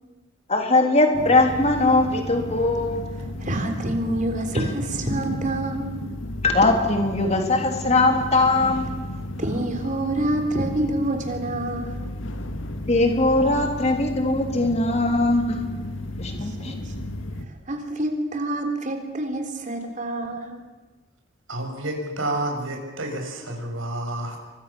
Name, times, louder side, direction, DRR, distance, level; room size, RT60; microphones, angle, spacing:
voice 1, 0.5-3.0 6.4-8.8 12.9-15.7 16.2-16.7, left 2 dB, 30° left, 4 dB, 3.3 m, -20 dB
sound 1, 1.1-17.4, left 1 dB, 70° left, 2.0 m, -34 dB
voice 2, 3.4-6.0 9.4-12.1 16.4-16.7 17.7-20.6, right 1 dB, 40° right, 5 dB, 3.6 m, -27 dB
voice 3, 21.5-24.4, right 1 dB, 75° right, 3 dB, 6.4 m, -29 dB
29.5 x 24.5 x 7.0 m, 1.3 s
head